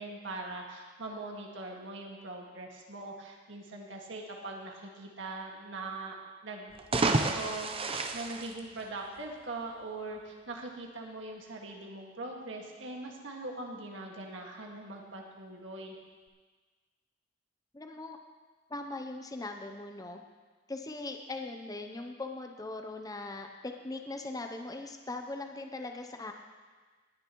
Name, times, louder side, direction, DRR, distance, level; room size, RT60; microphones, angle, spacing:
voice 1, 0.0-6.2 6.4-16.0, right 2 dB, 70° right, 0 dB, 1.9 m, -41 dB
sound 1, 6.7-9.3, right 3 dB, 30° right, 0.7 m, -31 dB
voice 2, 17.7-18.2 18.7-20.2 20.7-26.3, left 2 dB, 20° left, 4 dB, 0.7 m, -40 dB
19.5 x 10.5 x 3.1 m, 1.4 s
head